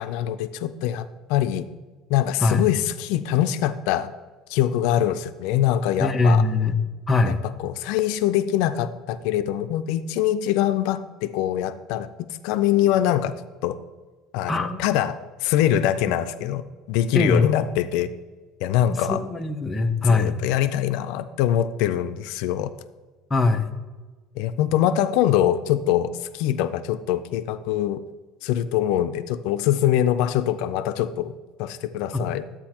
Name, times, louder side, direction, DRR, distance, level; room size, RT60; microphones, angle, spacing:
voice 1, 0.0-1.6 2.1-4.1 4.5-6.4 7.3-7.4 7.6-12.1 12.4-13.3 13.6-13.8 14.3-16.6 16.9-18.1 18.6-19.2 20.0-22.7 24.4-28.0 28.4-31.3 31.6-32.4, left 11 dB, 70° left, 11 dB, 0.4 m, -23 dB
voice 2, 6.0-6.8 7.1-7.4 14.5-14.8 17.1-17.5 18.9-20.3 23.3-23.7 32.1-32.2, left 3 dB, 15° left, 4 dB, 0.5 m, -21 dB
11.5 x 8.6 x 2.9 m, 1.3 s
cardioid pair, 170°, 0 cm